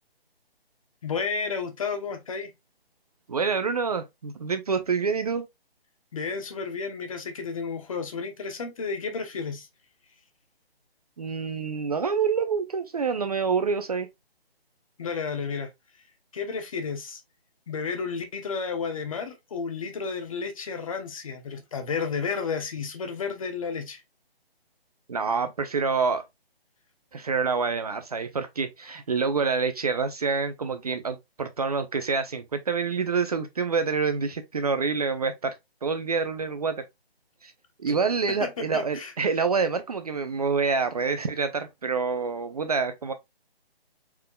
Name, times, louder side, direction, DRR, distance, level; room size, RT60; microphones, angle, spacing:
voice 1, 1.0-2.5 6.1-9.7 15.0-15.7 16.3-17.2 17.7-24.0 37.9-38.0 38.3-39.1, left 5 dB, 35° left, 1.0 m, -32 dB
voice 2, 3.3-5.5 11.2-14.1 25.1-26.2 27.1-35.5 35.8-36.8 37.4-37.5 37.8-43.1, right 5 dB, 40° right, 0.6 m, -27 dB
4.6 x 3.6 x 2.3 m
figure-of-eight pair, 155°, 31 cm